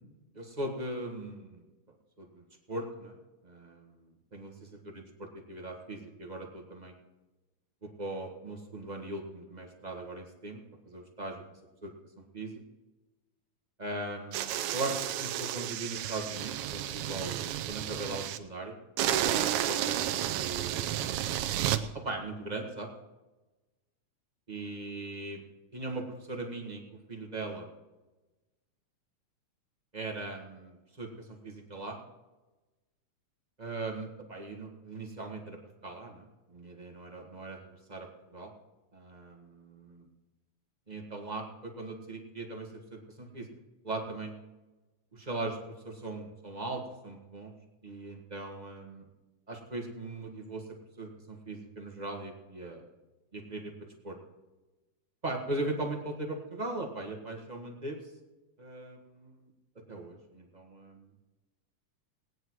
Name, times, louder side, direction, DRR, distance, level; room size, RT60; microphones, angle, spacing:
voice 1, 0.3-1.6 2.2-3.2 3.4-6.9 7.8-10.6 10.8-11.4 11.8-11.9 12.3-12.6 13.8-18.7 19.2-21.2 21.9-22.9 24.5-25.4 25.7-26.8 27.1-27.7 29.9-32.0 33.6-38.5 38.9-40.1 40.9-43.5 43.8-44.3 45.1-45.6 45.8-47.5 47.8-49.0 49.5-50.6 51.0-52.8 53.3-53.7 54.0-54.2 55.2-58.0 58.6-59.5 59.9-61.1, right 2 dB, 25° right, 1 dB, 0.9 m, -39 dB
sound 1, 14.3-18.4 19.0-21.8, right 12 dB, 75° right, 2.1 m, -32 dB
18.5 x 9.8 x 4.7 m, 1.1 s
omnidirectional pair, 3.7 m